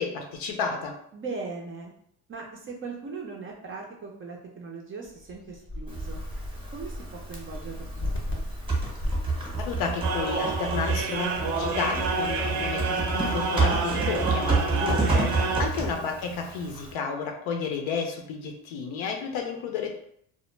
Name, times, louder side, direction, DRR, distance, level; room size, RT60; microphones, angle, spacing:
voice 1, 0.0-1.0 9.6-15.3 15.6-20.0, left 5 dB, 70° left, 3 dB, 0.7 m, -32 dB
voice 2, 1.1-1.9 2.3-6.2 6.7-8.4 15.3-15.6, right 4 dB, 30° right, -1 dB, 0.4 m, -39 dB
sound 1, 5.0-11.8, left 1 dB, 25° left, 0.6 m, -36 dB
Typing, 5.9-16.9, right 3 dB, 10° right, 0.8 m, -30 dB
sound 2, 10.0-15.6, right 3 dB, 90° right, 0.6 m, -29 dB
2.1 x 2.0 x 3.1 m, 0.69 s
cardioid pair, 100°, 49 cm